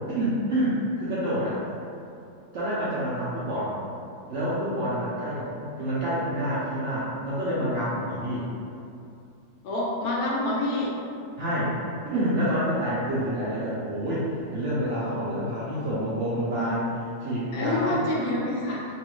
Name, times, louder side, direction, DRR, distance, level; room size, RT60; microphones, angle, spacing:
voice 1, 0.1-1.6 2.5-3.8 4.3-8.5 11.4-11.7 12.0-16.9 17.2-18.0, equal, 70° right, -9 dB, 0.7 m, -28 dB
voice 2, 9.6-10.9 17.5-18.9, left 2 dB, 75° left, -3 dB, 1.1 m, -27 dB
3.0 x 2.3 x 3.0 m, 2.6 s
omnidirectional pair, 1.7 m